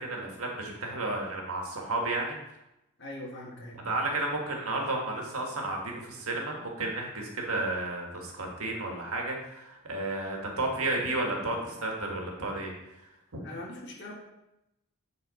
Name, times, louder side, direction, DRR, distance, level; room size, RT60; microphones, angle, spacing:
voice 1, 0.0-2.4 3.8-12.7 13.3-13.4, right 2 dB, 70° right, 0 dB, 1.6 m, -32 dB
voice 2, 3.0-3.9 13.4-14.1, left 1 dB, 50° left, -2 dB, 1.9 m, -41 dB
10.5 x 4.1 x 4.1 m, 0.91 s
head